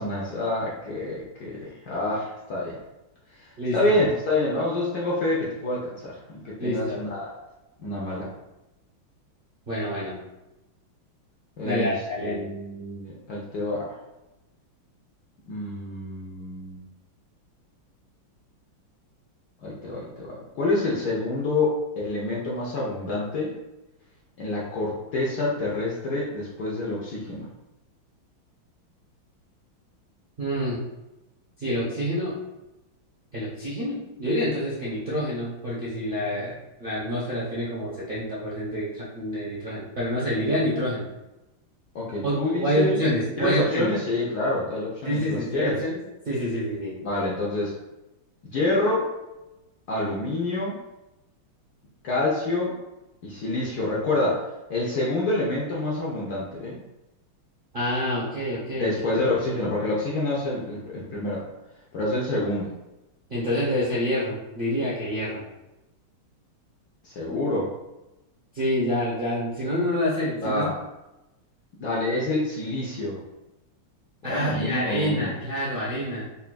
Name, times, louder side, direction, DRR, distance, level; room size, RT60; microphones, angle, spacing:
voice 1, 0.0-2.8 3.4-7.3 7.8-8.3 11.6-14.0 15.5-16.8 19.6-23.5 24.4-27.5 41.9-43.1 43.4-45.8 47.0-47.7 48.4-49.1 49.9-50.8 52.0-52.8 53.2-56.8 58.7-61.5 61.9-62.7 67.0-67.7 70.4-70.8 71.8-73.2 74.2-75.3, left 2 dB, 65° left, -5 dB, 1.0 m, -27 dB
voice 2, 3.6-4.0 6.6-7.0 9.7-10.2 11.6-12.4 30.4-30.8 31.6-32.4 33.3-41.1 42.2-42.3 42.6-43.9 45.0-46.0 46.2-47.0 57.7-58.9 63.3-65.4 67.3-67.4 68.5-70.7 74.2-76.3, equal, 50° right, -9 dB, 0.6 m, -27 dB
5.5 x 2.5 x 2.2 m, 0.98 s
omnidirectional pair, 2.3 m